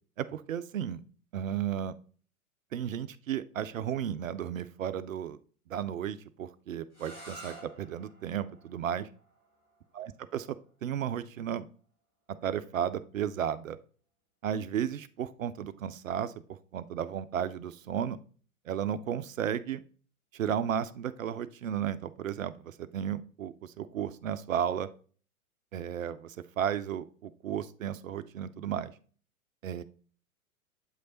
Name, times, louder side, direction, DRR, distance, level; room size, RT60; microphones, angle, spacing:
voice 1, 0.2-1.0 1.3-2.0 2.7-5.4 5.7-9.1 10.0-10.6 10.8-11.7 12.4-13.8 14.4-16.3 16.7-18.2 18.7-19.8 20.3-24.9 25.7-28.9 29.6-29.8, right 9 dB, 65° right, 13 dB, 0.5 m, -34 dB
sound 1, 6.9-12.6, right 1 dB, 70° left, 3.5 m, -53 dB
8.0 x 3.2 x 3.8 m, 0.41 s
figure-of-eight pair, 100°, 44 cm